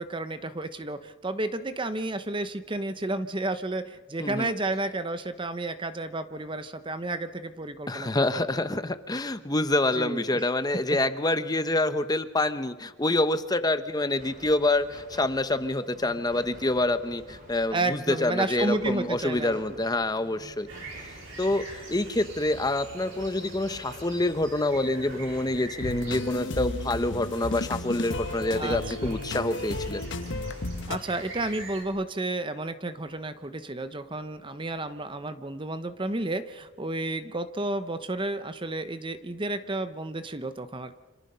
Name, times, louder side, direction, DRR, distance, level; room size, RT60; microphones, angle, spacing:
voice 1, 0.0-8.4 9.9-10.4 17.7-19.8 28.6-29.1 30.9-40.9, right 2 dB, 25° right, 11 dB, 0.8 m, -31 dB
voice 2, 4.2-4.5 7.9-20.7 21.0-21.1 21.4-30.0, left 2 dB, 20° left, 11 dB, 0.9 m, -27 dB
sound 1, 14.2-31.7, equal, 40° right, 4.3 m, -50 dB
sound 2, 20.7-31.9, right 2 dB, 65° right, 5.3 m, -45 dB
sound 3, 25.8-31.0, left 2 dB, 60° left, 1.1 m, -33 dB
29.0 x 26.0 x 5.6 m, 1.3 s
head